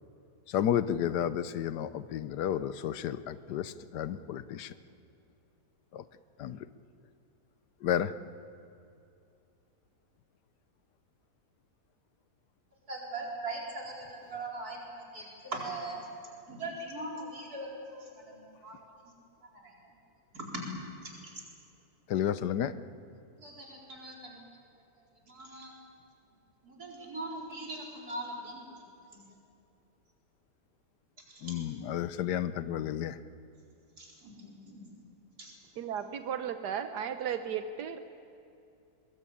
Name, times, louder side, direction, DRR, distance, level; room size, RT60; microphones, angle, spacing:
voice 1, 0.5-4.7 5.9-6.0 6.4-6.7 7.8-8.1 22.1-22.7 31.4-33.2, left 10 dB, 90° left, 14 dB, 1.4 m, -32 dB
voice 2, 12.9-16.0 16.5-18.8 20.3-20.7 21.2-21.3 23.4-24.4 25.3-25.7 26.6-28.6 29.1-29.2 31.3-31.6 34.0-34.8 35.4-35.5, right 2 dB, 65° right, -2 dB, 5.0 m, -40 dB
voice 3, 35.8-38.0, right 8 dB, 85° right, 8 dB, 1.4 m, -35 dB
22.0 x 21.0 x 8.6 m, 2.5 s
omnidirectional pair, 1.7 m